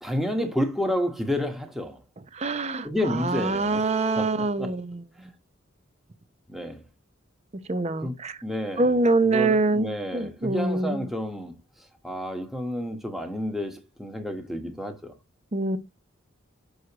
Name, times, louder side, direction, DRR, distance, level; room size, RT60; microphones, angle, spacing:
voice 1, 0.0-2.0 2.8-3.8 4.2-4.7 6.5-6.8 8.0-8.1 8.4-8.9 9.2-11.5 12.0-15.1, left 1 dB, ahead, 1.2 m, -30 dB
voice 2, 2.3-5.0 7.7-8.4 8.8-11.1 15.5-15.8, right 3 dB, 30° right, 0.7 m, -25 dB
6.4 x 6.2 x 2.9 m
head